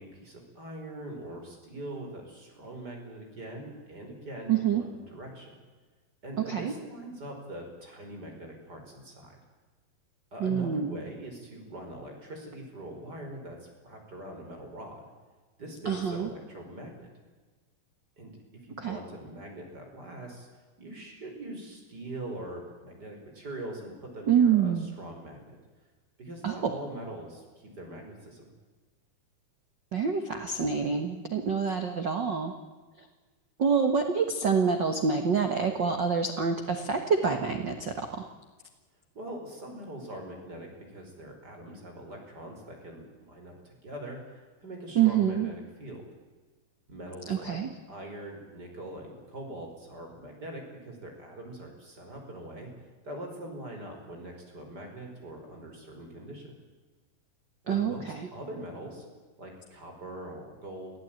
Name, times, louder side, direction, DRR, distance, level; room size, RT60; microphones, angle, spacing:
voice 1, 0.0-5.5 6.2-9.4 10.3-15.0 15.6-17.1 18.2-18.4 18.6-20.5 20.8-25.4 26.2-28.4 39.1-46.0 46.9-47.6 47.9-52.7 53.0-56.5 57.6-59.0 59.4-60.9, right 1 dB, 25° right, 2 dB, 5.5 m, -42 dB
voice 2, 4.5-4.8 6.4-6.7 10.4-11.0 15.8-16.3 18.8-19.0 24.3-24.9 26.4-26.7 29.9-32.5 33.6-38.3 44.9-45.5 47.2-47.7 57.7-58.3, right 6 dB, 70° right, 6 dB, 1.0 m, -26 dB
24.5 x 16.0 x 9.1 m, 1.3 s
omnidirectional pair, 4.5 m